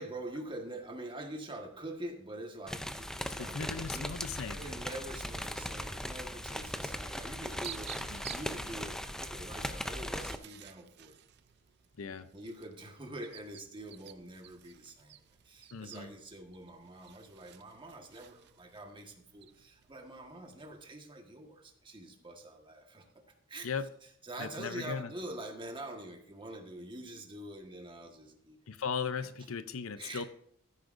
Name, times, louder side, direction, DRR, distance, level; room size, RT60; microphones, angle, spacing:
voice 1, 0.0-4.1 4.6-11.1 12.3-23.1 23.5-23.7 24.2-28.6 30.0-30.3, right 1 dB, 25° right, 3 dB, 1.5 m, -45 dB
sound 1, 2.7-10.4, equal, 5° left, 0.5 m, -39 dB
voice 2, 3.4-4.6 8.1-8.3 12.0-12.3 15.7-16.1 23.6-23.9 24.4-25.1 28.7-30.2, left 5 dB, 70° left, 12 dB, 0.6 m, -37 dB
sound 2, 7.4-20.9, right 12 dB, 50° right, 0.5 m, -53 dB
15.0 x 9.9 x 2.6 m, 0.68 s
head